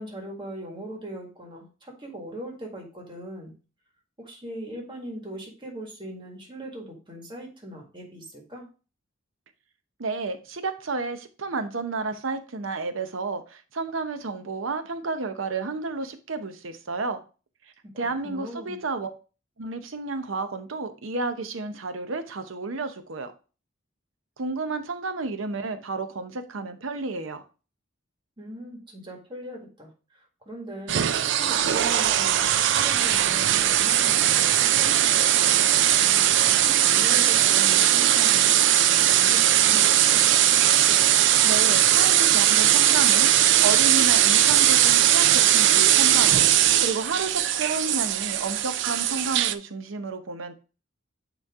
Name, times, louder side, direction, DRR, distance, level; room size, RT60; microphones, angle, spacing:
voice 1, 0.0-3.5 4.2-8.7 17.8-18.8 28.4-29.9 30.5-35.8 36.6-40.2, right 1 dB, 25° right, 1.7 m, -40 dB
voice 2, 10.0-17.2 18.0-19.1 19.6-23.3 24.4-27.4 41.4-50.6, right 3 dB, 75° right, 0.8 m, -31 dB
sound 1, 30.9-49.5, right 11 dB, 60° right, 0.4 m, -19 dB
8.9 x 3.2 x 3.6 m
head